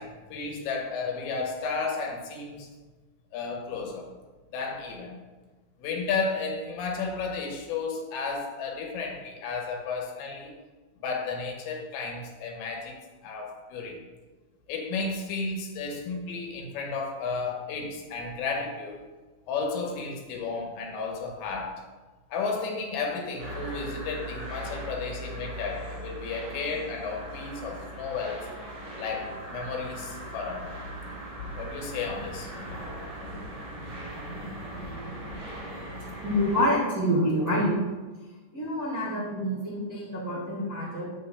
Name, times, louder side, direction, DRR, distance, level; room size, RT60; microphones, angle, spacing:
voice 1, 0.0-2.7 3.3-4.1 4.5-5.2 5.8-10.5 11.0-13.0 13.2-14.0 14.7-19.1 19.5-21.8 22.3-28.5 29.0-30.7 31.5-32.8, left 4 dB, 85° left, 1 dB, 3.2 m, -33 dB
sound 1, 23.4-36.7, right 1 dB, 30° right, 2.5 m, -39 dB
voice 2, 36.2-37.7 38.5-41.1, equal, 55° right, -10 dB, 1.0 m, -27 dB
9.1 x 7.9 x 2.2 m, 1.3 s
omnidirectional pair, 5.1 m